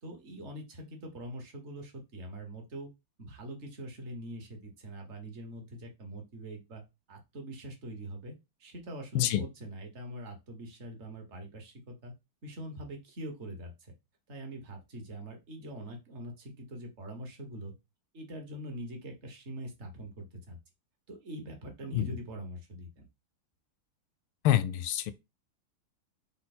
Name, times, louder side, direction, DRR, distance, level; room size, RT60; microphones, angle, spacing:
voice 1, 0.0-2.9 3.2-6.8 7.1-8.3 8.6-12.1 12.4-13.9 14.3-17.7 18.1-20.6 21.1-23.0, right 1 dB, 40° right, 1.2 m, -43 dB
voice 2, 24.4-25.1, left 12 dB, 85° left, 1.4 m, -26 dB
5.5 x 2.2 x 4.2 m
omnidirectional pair, 2.2 m